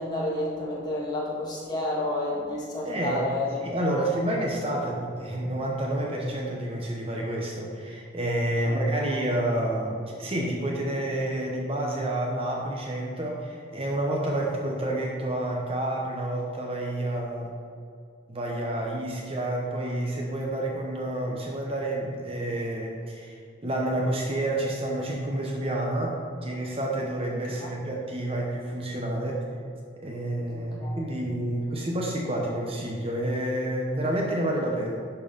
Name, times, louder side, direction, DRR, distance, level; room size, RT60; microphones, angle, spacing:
voice 1, 0.0-3.5 3.9-4.0 8.6-9.1 27.4-27.7 30.5-31.0, left 1 dB, 25° left, -5 dB, 2.0 m, -31 dB
voice 2, 2.8-3.3 3.6-17.5 18.3-23.4 23.6-29.4 30.0-35.0, right 1 dB, 30° right, -1 dB, 1.0 m, -29 dB
11.5 x 4.7 x 5.3 m, 2.4 s
head